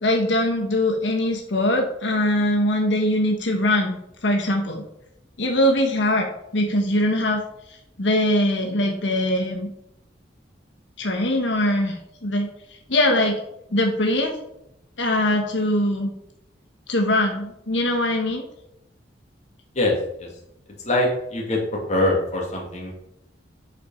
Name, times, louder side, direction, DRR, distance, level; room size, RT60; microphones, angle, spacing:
voice 1, 0.0-4.8 5.4-7.4 7.7-9.7 11.0-12.5 12.9-13.4 13.7-14.4 15.0-16.1 16.9-18.4, left 1 dB, 90° left, 2 dB, 1.2 m, -22 dB
voice 2, 19.7-20.3 20.8-22.9, left 2 dB, 40° left, -1 dB, 2.5 m, -23 dB
8.2 x 5.2 x 5.6 m, 0.81 s
head